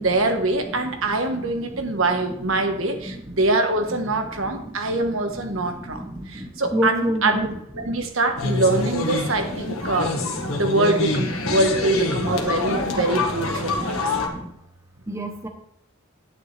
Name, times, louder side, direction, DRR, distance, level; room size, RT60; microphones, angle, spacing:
voice 1, 0.0-10.1 10.5-14.2, right 2 dB, 70° right, 5 dB, 1.4 m, -24 dB
voice 2, 1.7-2.0 3.0-3.1 4.5-4.8 5.3-7.5 7.9-8.1 9.2-9.5 9.8-9.9 10.2-10.6 11.4-11.6 12.4-12.9 13.5-14.5 15.1-15.5, equal, 15° right, 3 dB, 1.0 m, -31 dB
sound 1, 8.4-14.3, left 3 dB, 80° left, 1.6 m, -26 dB
10.5 x 9.8 x 3.4 m, 0.76 s
head